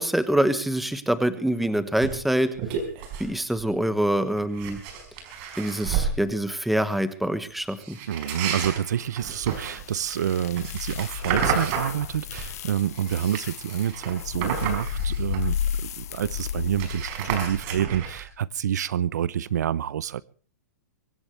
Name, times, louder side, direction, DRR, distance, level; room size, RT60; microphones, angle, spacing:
voice 1, 0.0-2.5 3.2-4.8 5.6-8.0, right 1 dB, ahead, 1.2 m, -25 dB
sound 1, 2.0-2.2 2.5-3.3 3.6-3.8 4.4-6.2 7.8-12.6 12.9-15.7 16.0-16.1 16.3-18.3, right 6 dB, 40° right, 5.1 m, -31 dB
voice 2, 8.1-20.2, right 10 dB, 80° right, 0.7 m, -28 dB
sound 2, 9.2-17.1, left 9 dB, 65° left, 0.8 m, -33 dB
24.0 x 16.0 x 3.3 m
hypercardioid pair, 150°, 9 cm